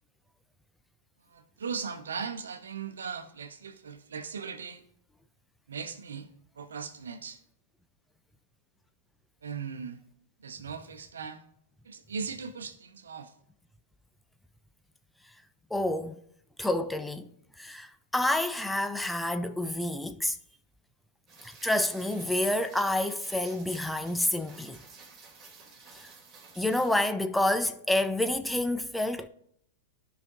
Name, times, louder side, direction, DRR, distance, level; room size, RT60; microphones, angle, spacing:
voice 1, 1.3-4.8 5.7-6.3 6.6-7.4 9.4-10.0 10.4-11.4 11.8-13.3 26.4-26.5, right 6 dB, 75° right, 0.9 m, -38 dB
voice 2, 15.7-16.2 16.6-17.3 17.6-20.4 21.4-24.8 26.0-26.1 26.6-29.3, left 1 dB, 5° left, 0.4 m, -28 dB
Rain, 21.3-27.1, right 4 dB, 25° right, 2.2 m, -52 dB
14.5 x 5.1 x 2.8 m
figure-of-eight pair, 105°, 0 cm